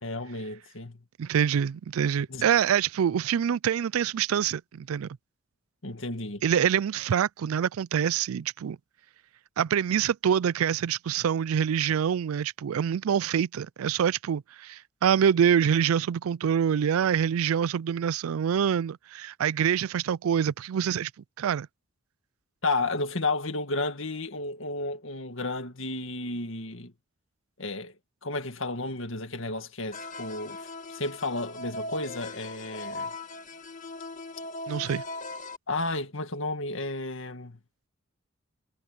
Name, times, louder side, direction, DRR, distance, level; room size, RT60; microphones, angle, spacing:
voice 1, 0.0-1.0 2.3-2.5 5.8-6.4 22.6-26.9 27.6-27.9 28.2-33.1 35.7-37.6, left 2 dB, 65° left, 2.1 m, -32 dB
voice 2, 1.2-5.1 6.4-8.8 9.6-21.1 21.4-21.7 34.7-35.0, right 8 dB, 90° right, 0.4 m, -25 dB
sound 1, 29.9-35.6, left 2 dB, 40° left, 2.0 m, -39 dB
head